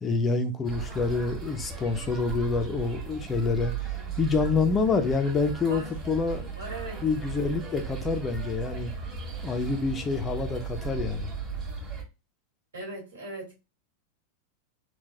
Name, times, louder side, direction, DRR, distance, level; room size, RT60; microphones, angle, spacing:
voice 1, 0.0-3.7 4.2-6.5 7.0-8.9 9.4-11.3, left 4 dB, 20° left, 0.5 m, -27 dB
sound 1, 0.6-12.0, right 6 dB, 25° right, 1.8 m, -36 dB
voice 2, 6.6-7.0 12.7-13.6, right 2 dB, 65° right, 1.9 m, -38 dB
3.7 x 2.3 x 2.8 m
figure-of-eight pair, 90°, 0 cm